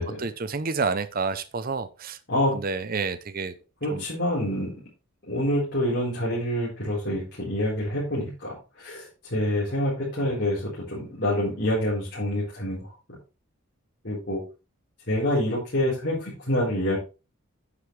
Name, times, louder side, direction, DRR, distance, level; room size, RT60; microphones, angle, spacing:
voice 1, 0.2-2.2 2.5-3.5 3.9-4.0, right 4 dB, 40° right, 0.7 m, -29 dB
voice 2, 3.8-4.8 5.3-13.2 14.0-14.4 15.1-17.0, left 1 dB, 50° left, 4.3 m, -27 dB
9.9 x 8.4 x 3.3 m
head